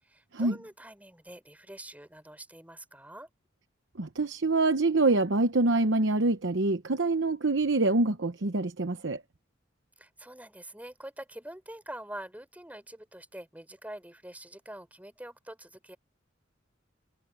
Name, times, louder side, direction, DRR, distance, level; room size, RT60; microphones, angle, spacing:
voice 1, 0.0-3.3 10.0-16.0, right 1 dB, 10° right, 4.3 m, -45 dB
voice 2, 4.0-9.2, right 2 dB, 70° right, 1.0 m, -25 dB
head